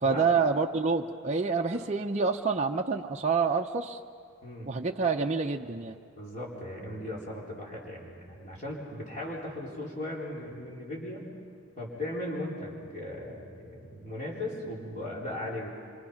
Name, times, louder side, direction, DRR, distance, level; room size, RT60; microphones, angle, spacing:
voice 1, 0.0-4.0 4.7-6.0, right 4 dB, 30° right, 1 dB, 0.6 m, -27 dB
voice 2, 4.4-4.7 6.1-11.3 11.8-15.7, left 1 dB, 35° left, -5 dB, 4.4 m, -37 dB
27.0 x 25.5 x 5.8 m, 2.2 s
head